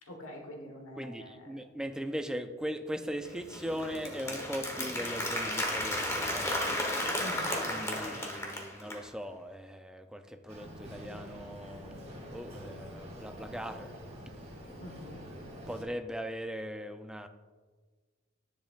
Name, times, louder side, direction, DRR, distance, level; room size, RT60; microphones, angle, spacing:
voice 1, 0.0-1.6 7.2-8.2 14.8-15.2, equal, 90° left, 3 dB, 1.4 m, -46 dB
voice 2, 1.0-6.5 7.0-7.1 7.7-14.0 14.3-14.4 15.7-17.3, equal, 5° right, 7 dB, 0.3 m, -39 dB
Applause, 3.2-9.0, left 1 dB, 15° left, 1.1 m, -34 dB
Boat Water vehicle, 10.5-15.8, equal, 35° right, 2.3 m, -46 dB
10.0 x 7.4 x 2.5 m, 1.4 s
head